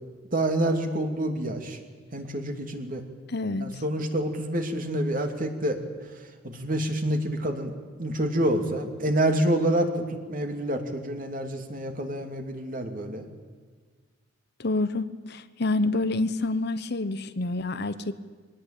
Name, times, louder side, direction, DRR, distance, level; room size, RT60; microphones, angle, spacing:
voice 1, 0.3-1.8 2.1-3.0 3.6-5.8 6.4-13.2, right 1 dB, 45° right, 5 dB, 2.8 m, -27 dB
voice 2, 3.3-3.8 14.6-18.1, left 2 dB, 55° left, 12 dB, 1.0 m, -28 dB
23.0 x 18.5 x 9.0 m, 1.6 s
head